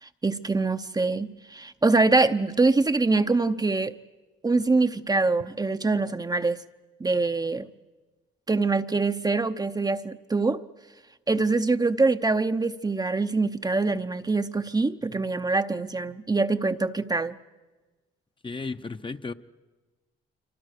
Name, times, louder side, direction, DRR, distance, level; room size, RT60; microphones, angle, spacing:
voice 1, 0.0-3.9 4.4-6.6 7.0-7.7 8.5-10.6 11.3-17.4, right 3 dB, 20° right, 0.8 m, -24 dB
voice 2, 18.4-19.3, left 4 dB, 25° left, 0.9 m, -34 dB
26.5 x 25.0 x 6.6 m
cardioid pair, 90°, 20 cm